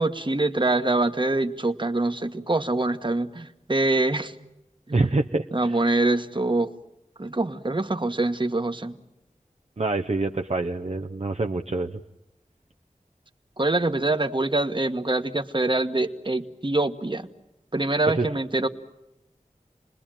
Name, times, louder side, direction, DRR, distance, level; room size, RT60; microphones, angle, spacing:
voice 1, 0.0-4.3 4.9-5.0 5.5-6.7 7.2-8.9 13.6-17.3 17.7-18.7, right 2 dB, 35° right, 8 dB, 1.4 m, -24 dB
voice 2, 4.9-5.8 9.8-11.9 18.2-18.3, right 3 dB, 50° right, 4 dB, 0.9 m, -26 dB
28.5 x 20.5 x 9.1 m, 0.89 s
wide cardioid pair, 55°, 14 cm